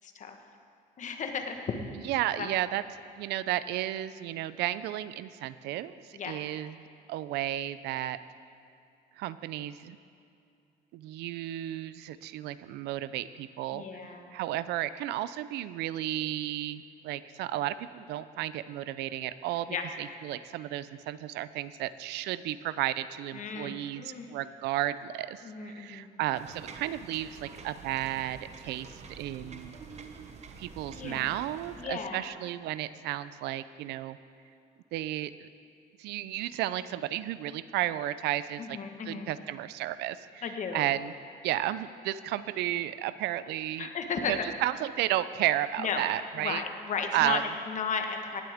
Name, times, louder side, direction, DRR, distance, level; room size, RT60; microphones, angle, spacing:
voice 1, 0.0-0.4 1.0-1.8 2.4-2.5 6.1-6.4 13.7-14.3 19.7-19.8 23.3-24.3 25.4-26.1 30.9-31.3 31.8-32.3 38.6-39.3 40.4-40.9 43.8-44.4 45.8-46.0 46.4-48.4, left 6 dB, 45° left, 5 dB, 1.3 m, -35 dB
voice 2, 2.0-2.8 3.1-6.8 7.1-8.2 9.2-10.0 10.9-29.8 30.6-34.2 34.9-35.5 36.0-38.8 39.1-41.1 41.4-43.9 44.3-46.6 47.1-47.4, right 13 dB, 80° right, 15 dB, 0.5 m, -33 dB
sound 1, 26.3-31.8, right 5 dB, 40° right, 1.0 m, -47 dB
18.0 x 11.5 x 3.6 m, 2.6 s
cardioid pair, 110°, 17 cm